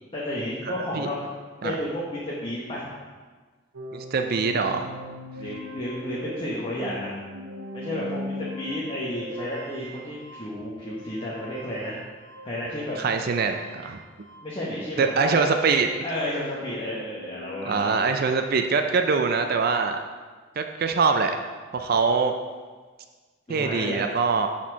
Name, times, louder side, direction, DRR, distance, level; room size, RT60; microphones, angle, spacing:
voice 1, 0.1-1.2 1.6-2.9 5.4-7.1 7.7-12.0 12.4-13.0 14.4-15.6 16.0-18.1 23.5-24.1, left 1 dB, 25° left, -7 dB, 1.1 m, -31 dB
sound 1, 3.7-14.6 14.8-18.8, left 1 dB, 80° right, 1.0 m, -41 dB
voice 2, 3.9-4.9 13.0-14.0 15.0-15.9 17.7-20.0 20.6-21.3 21.7-22.3 23.5-24.5, right 5 dB, 45° right, 6 dB, 0.4 m, -23 dB
7.2 x 4.3 x 6.0 m, 1.4 s
head